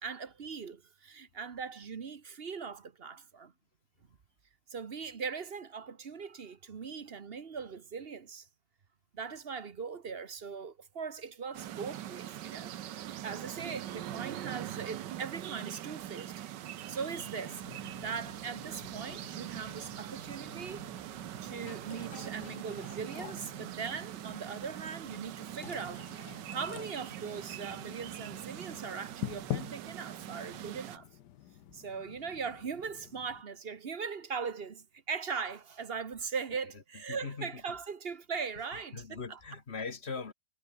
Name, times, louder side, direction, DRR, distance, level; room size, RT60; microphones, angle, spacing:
voice 1, 0.0-3.5 4.7-8.5 9.1-12.7 13.0-16.3 16.9-31.1 31.7-39.4, right 5 dB, 40° right, 1.1 m, -40 dB
sound 1, 11.5-31.0, right 12 dB, 85° right, 1.5 m, -43 dB
sound 2, 17.1-33.4, left 12 dB, 75° left, 1.4 m, -47 dB
voice 2, 37.1-37.6 38.7-40.3, left 5 dB, 40° left, 1.6 m, -41 dB
omnidirectional pair, 1.9 m